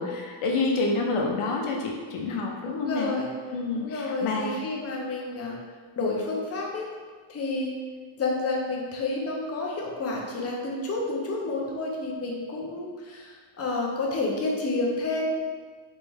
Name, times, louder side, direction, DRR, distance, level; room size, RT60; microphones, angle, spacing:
voice 1, 0.0-3.1 3.5-4.7, left 3 dB, 90° left, 0 dB, 0.7 m, -28 dB
voice 2, 2.6-3.3 3.7-5.6 6.0-6.9 7.3-7.8 8.1-15.3, left 2 dB, 30° left, -2 dB, 0.6 m, -30 dB
3.4 x 3.1 x 3.4 m, 1.5 s
wide cardioid pair, 155°, 50 cm